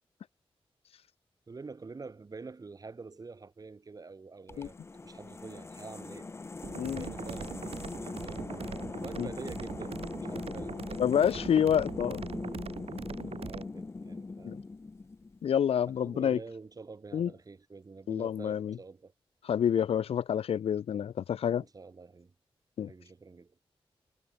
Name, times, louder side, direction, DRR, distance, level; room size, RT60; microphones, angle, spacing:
voice 1, 1.5-4.7 5.0-6.3 6.9-11.6 13.4-14.6 15.9-19.1 21.6-22.3 22.9-23.6, right 4 dB, 40° right, 1.6 m, -47 dB
sound 1, 4.5-15.6, left 3 dB, 25° left, 0.6 m, -41 dB
sound 2, 6.6-13.6, right 7 dB, 80° right, 1.7 m, -42 dB
voice 2, 6.7-7.0 9.2-9.3 11.0-12.3 14.5-14.6 15.4-16.4 17.1-17.3 18.1-18.8 19.4-21.6 22.8-22.9, left 8 dB, 80° left, 0.4 m, -28 dB
wide cardioid pair, 125°, 10 cm